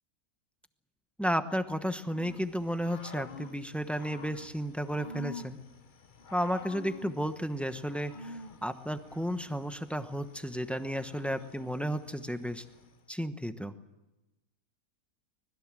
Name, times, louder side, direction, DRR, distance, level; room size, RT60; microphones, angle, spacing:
voice 1, 1.2-5.6 6.3-12.6 13.1-13.7, equal, ahead, 9 dB, 0.8 m, -33 dB
Growling / Cricket, 2.0-13.0, left 4 dB, 35° left, 1.0 m, -48 dB
25.0 x 20.5 x 7.6 m, 1.0 s
omnidirectional pair, 1.6 m